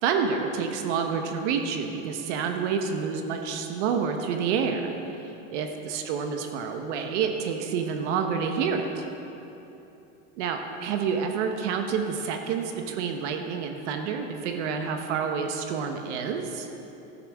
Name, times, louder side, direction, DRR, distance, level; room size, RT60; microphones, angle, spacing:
voice 1, 0.0-4.9 5.5-9.0 10.4-16.7, right 6 dB, 75° right, 5 dB, 1.1 m, -28 dB
12.0 x 9.5 x 3.5 m, 2.9 s
supercardioid pair, 110°, 35 cm